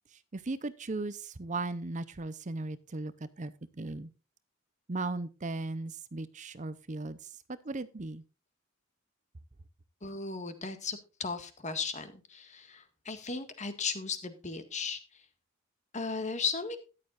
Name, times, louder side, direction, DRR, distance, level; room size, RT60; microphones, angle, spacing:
voice 1, 0.1-4.1 4.9-8.2, right 2 dB, 35° right, 14 dB, 0.6 m, -37 dB
voice 2, 10.0-15.2 15.9-16.8, left 5 dB, 35° left, 9 dB, 1.7 m, -36 dB
13.5 x 11.0 x 2.5 m, 0.32 s
head